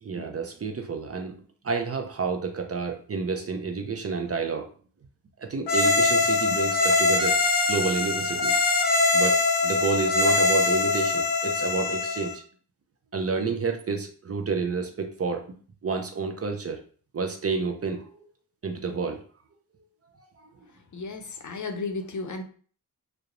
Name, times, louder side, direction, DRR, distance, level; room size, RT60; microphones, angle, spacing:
voice 1, 0.0-4.7 5.4-7.4 7.7-8.6 9.1-12.4 13.1-15.4 15.8-16.8 17.1-18.2 18.6-19.2, right 5 dB, 35° right, 4 dB, 0.5 m, -30 dB
sound 1, 5.7-12.3, left 3 dB, 90° left, 0.6 m, -23 dB
voice 2, 20.9-22.4, left 3 dB, 45° left, 5 dB, 0.5 m, -33 dB
2.4 x 2.0 x 2.9 m, 0.43 s
cardioid pair, 45°, 40 cm